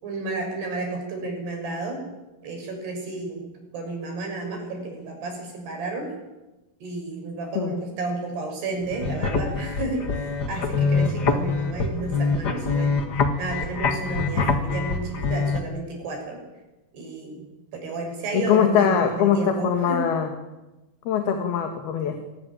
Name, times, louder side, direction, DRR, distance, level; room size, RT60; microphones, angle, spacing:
voice 1, 0.0-2.0 2.4-3.5 3.7-6.1 6.8-13.0 13.4-16.4 16.9-20.1, right 3 dB, 85° right, 2 dB, 8.8 m, -32 dB
sound 1, 8.8-15.6, left 4 dB, 45° left, 1.3 m, -25 dB
voice 2, 18.3-20.3 21.1-22.2, left 8 dB, 75° left, 5 dB, 3.8 m, -22 dB
25.5 x 19.0 x 9.2 m, 1.1 s
omnidirectional pair, 4.6 m